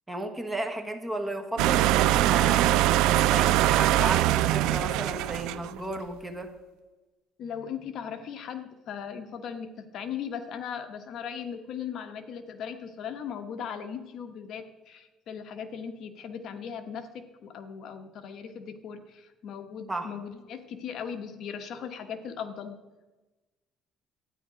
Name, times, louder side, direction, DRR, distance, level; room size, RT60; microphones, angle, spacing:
voice 1, 0.1-2.7 3.0-6.5 19.9-20.1, right 1 dB, 10° right, 5 dB, 1.4 m, -34 dB
sound 1, 1.6-5.8, right 14 dB, 85° right, 0.4 m, -22 dB
voice 2, 7.4-22.8, left 7 dB, 55° left, 8 dB, 1.1 m, -38 dB
12.5 x 9.8 x 5.0 m, 1.2 s
cardioid pair, 135°, 0 cm